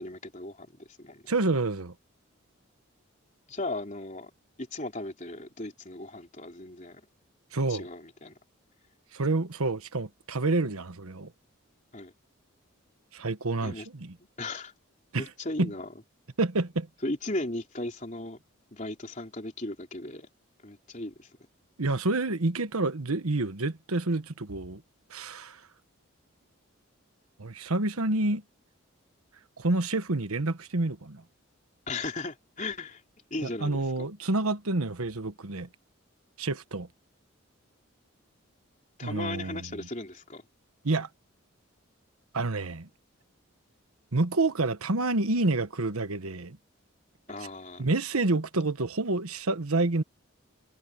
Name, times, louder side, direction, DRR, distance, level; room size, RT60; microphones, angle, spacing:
voice 1, 0.0-1.2 3.5-4.3 4.6-7.0 7.7-8.3 11.9-12.1 13.6-13.9 14.4-14.7 15.2-15.9 17.0-18.4 18.7-20.3 20.6-21.3 31.9-33.0 33.3-34.1 39.0-40.4 47.3-47.9, left 2 dB, 35° left, 3.8 m, -36 dB
voice 2, 1.3-1.9 7.5-7.9 9.1-11.3 13.1-14.1 15.1-15.2 15.6-15.7 16.4-16.9 21.8-24.8 25.1-25.6 27.4-28.4 29.6-31.2 33.6-35.7 36.4-36.9 39.0-39.7 40.8-41.1 42.3-42.9 44.1-46.6 47.8-50.0, right 2 dB, 90° right, 1.3 m, -28 dB
head